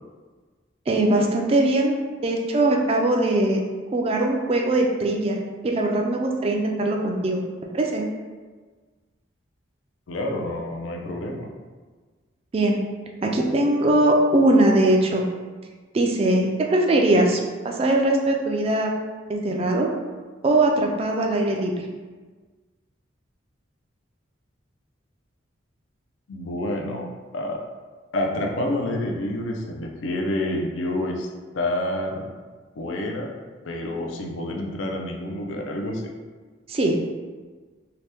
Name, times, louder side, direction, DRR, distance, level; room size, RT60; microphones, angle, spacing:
voice 1, 0.9-2.0 2.2-3.6 3.9-7.4 7.7-8.1 12.5-12.8 13.2-15.2 15.9-17.4 17.6-18.9 19.3-19.9 20.4-21.7 36.7-37.0, right 1 dB, 30° right, 1 dB, 0.3 m, -21 dB
voice 2, 10.1-11.5 26.3-27.1 27.3-27.6 28.1-31.3 31.5-32.3 32.8-33.3 33.6-36.1, left 1 dB, 80° left, 1 dB, 0.4 m, -28 dB
2.8 x 2.1 x 3.3 m, 1.4 s
head